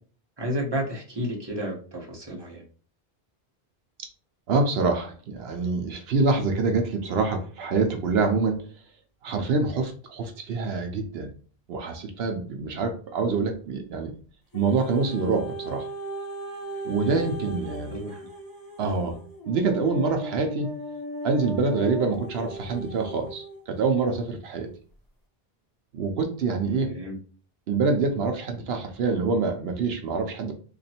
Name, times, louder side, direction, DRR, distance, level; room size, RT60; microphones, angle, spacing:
voice 1, 0.4-2.6 17.0-17.2 17.9-18.2 18.8-19.0 26.7-27.2, equal, 25° right, -2 dB, 1.1 m, -32 dB
voice 2, 4.5-8.6 9.2-11.3 11.7-14.1 14.5-15.8 16.8-18.0 18.8-19.2 19.5-20.7 21.2-24.7 25.9-26.9 27.7-30.5, right 4 dB, 80° right, 4 dB, 0.9 m, -26 dB
sound 1, 14.5-23.6 24.3-24.4, right 1 dB, 25° left, 0.7 m, -37 dB
2.9 x 2.6 x 4.2 m, 0.41 s
omnidirectional pair, 1.0 m